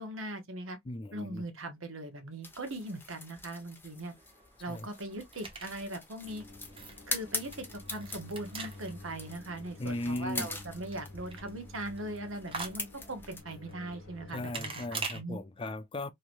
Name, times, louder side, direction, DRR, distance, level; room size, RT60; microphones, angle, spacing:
voice 1, 0.0-0.8 1.1-4.1 4.6-6.4 7.1-14.8 15.1-15.4, right 1 dB, 75° right, 1.0 m, -40 dB
voice 2, 0.9-1.4 4.7-4.9 9.8-10.5 14.3-16.1, left 1 dB, 25° left, 0.4 m, -37 dB
sound 1, 2.4-13.4, left 3 dB, 10° left, 0.8 m, -43 dB
sound 2, 4.0-15.2, right 4 dB, 25° right, 0.9 m, -45 dB
sound 3, 6.2-15.1, left 2 dB, 75° left, 1.0 m, -50 dB
3.2 x 2.8 x 2.4 m
head